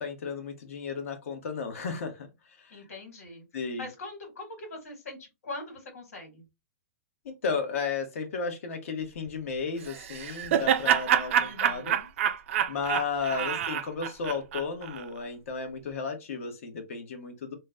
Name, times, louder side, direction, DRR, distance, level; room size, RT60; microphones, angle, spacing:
voice 1, 0.0-2.3 2.6-2.8 3.5-3.9 7.2-11.9 12.7-17.5, left 5 dB, 70° left, 1.2 m, -34 dB
voice 2, 2.7-3.5 3.8-6.4 11.4-12.1 13.3-13.6, left 2 dB, 85° left, 2.0 m, -42 dB
Laughter, 9.9-15.0, right 10 dB, 55° right, 0.4 m, -27 dB
3.1 x 2.2 x 3.6 m
hypercardioid pair, 160°, 8 cm